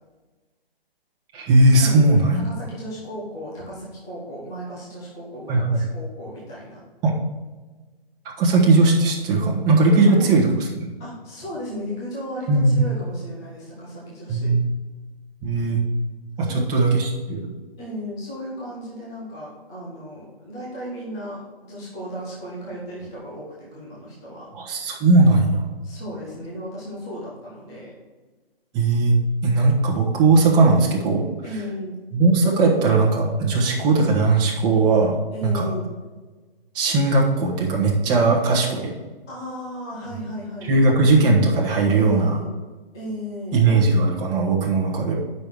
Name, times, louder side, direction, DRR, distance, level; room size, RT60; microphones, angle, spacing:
voice 1, 1.3-2.4 5.5-5.8 7.0-7.1 8.4-10.5 10.8-10.9 12.5-12.8 14.3-14.6 15.4-15.8 16.4-17.4 24.5-25.6 28.7-29.2 29.4-31.2 32.1-35.2 35.4-35.7 36.7-38.9 40.6-42.4 43.5-45.1, right 3 dB, 15° right, -3 dB, 1.2 m, -18 dB
voice 2, 2.3-6.8 10.0-10.5 11.0-14.6 16.4-16.7 17.8-24.5 25.8-27.9 31.4-32.0 35.3-35.9 39.3-40.7 41.9-42.5 42.9-43.6, equal, 5° left, -7 dB, 0.4 m, -35 dB
8.4 x 5.5 x 4.7 m, 1.3 s
figure-of-eight pair, 140°, 30 cm